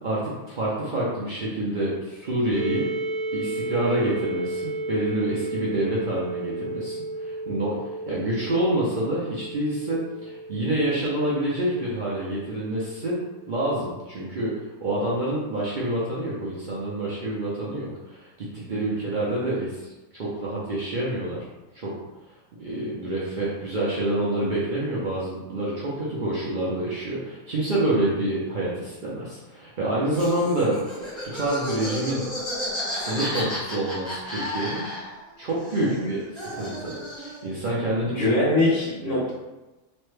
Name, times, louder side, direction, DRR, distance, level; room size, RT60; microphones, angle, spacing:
voice 1, 0.0-2.9 3.3-13.1 13.5-14.5 14.8-21.4 21.7-21.9 22.6-30.9 31.3-32.2 32.9-34.8 35.4-38.3 39.0-39.2, right 1 dB, 55° right, -6 dB, 0.6 m, -27 dB
sound 1, 2.5-14.2, right 2 dB, 35° left, 1.0 m, -34 dB
Laughter, 30.1-35.3 35.6-37.5, equal, ahead, 1.0 m, -33 dB
voice 2, 35.8-36.1 38.0-39.3, left 1 dB, 75° left, -6 dB, 1.3 m, -23 dB
3.1 x 2.1 x 3.2 m, 1.1 s
omnidirectional pair, 1.3 m